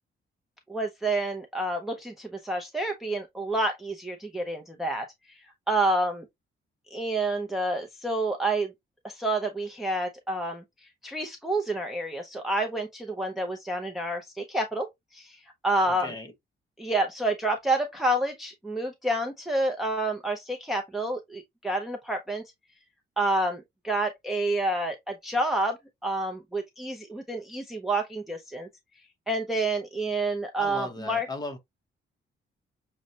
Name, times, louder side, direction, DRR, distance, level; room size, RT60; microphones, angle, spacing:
voice 1, 0.7-6.3 6.9-8.7 9.0-16.1 16.8-22.4 23.2-25.8 26.0-28.7 29.3-31.3, right 2 dB, ahead, 0.4 m, -29 dB
voice 2, 15.8-16.3 30.6-31.6, left 3 dB, 20° left, 0.9 m, -37 dB
6.2 x 2.1 x 2.7 m
wide cardioid pair, 165°, 21 cm